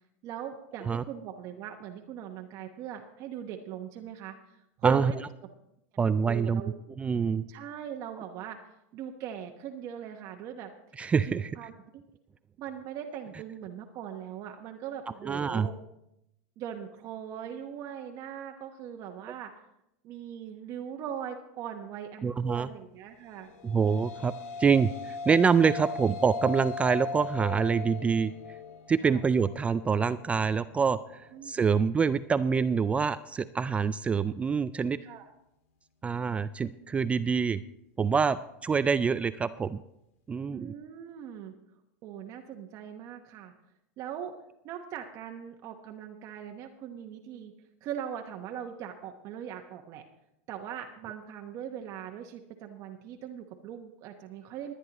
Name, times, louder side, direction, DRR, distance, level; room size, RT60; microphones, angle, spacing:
voice 1, 0.2-5.2 6.2-6.8 7.5-8.6 8.9-10.7 11.3-12.0 12.6-15.7 16.6-19.5 20.0-23.5 29.0-29.2 31.3-31.8 35.0-35.3 40.5-41.5 42.0-43.5 44.0-44.3 44.6-47.5 47.8-50.0 50.5-54.7, right 9 dB, 45° right, 3 dB, 1.0 m, -40 dB
voice 2, 6.0-6.6 7.0-7.4 11.0-11.5 15.2-15.7 22.2-22.7 23.6-24.3 24.6-28.3 28.9-31.0 31.4-35.0 36.0-37.6 38.0-39.8 40.3-40.7, right 6 dB, 15° right, 13 dB, 0.3 m, -26 dB
sound 1, 23.4-31.9, left 4 dB, 70° left, 1.7 m, -39 dB
21.0 x 9.8 x 3.0 m, 0.82 s
supercardioid pair, 120°, 8 cm